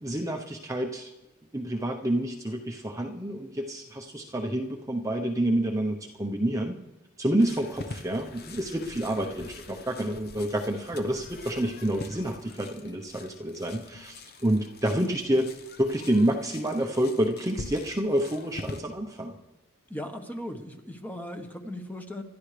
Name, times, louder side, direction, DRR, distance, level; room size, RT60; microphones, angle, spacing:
voice 1, 0.0-1.1 1.5-6.8 7.2-19.4, right 1 dB, 15° right, 1 dB, 0.8 m, -28 dB
sound 1, 7.4-18.8, left 2 dB, 50° left, 1.0 m, -44 dB
voice 2, 19.9-22.2, left 1 dB, 10° left, 4 dB, 1.1 m, -38 dB
27.0 x 12.0 x 3.3 m, 1.0 s
head